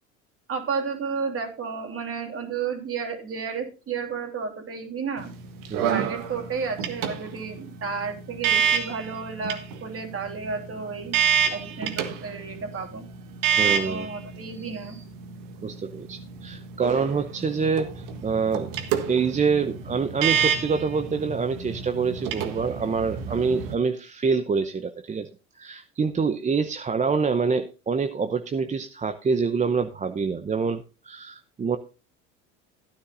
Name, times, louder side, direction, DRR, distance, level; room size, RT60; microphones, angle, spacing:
voice 1, 0.5-5.3 5.9-11.2 11.5-13.1 13.6-15.0, right 5 dB, 40° right, 4 dB, 3.1 m, -32 dB
sound 1, 5.2-23.7, right 7 dB, 65° right, 1.6 m, -29 dB
voice 2, 5.7-6.1 13.6-14.1 14.5-15.0 15.6-18.7 19.1-25.3 25.6-31.8, right 5 dB, 20° right, 8 dB, 0.7 m, -26 dB
15.0 x 9.5 x 2.6 m, 0.32 s
hypercardioid pair, 80°, 35 cm